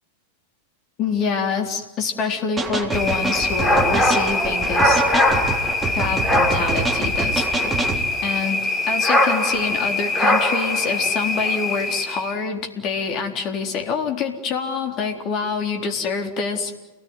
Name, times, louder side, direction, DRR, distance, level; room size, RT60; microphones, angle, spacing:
voice 1, 1.0-5.0 5.9-7.8 8.2-16.7, left 5 dB, 35° left, 4 dB, 3.9 m, -26 dB
sound 1, 2.6-8.1, right 3 dB, 10° right, 3.5 m, -26 dB
sound 2, 2.9-12.3, left 2 dB, 15° left, 4.7 m, -21 dB
29.5 x 19.0 x 9.7 m, 1.2 s
figure-of-eight pair, 90°, 0 cm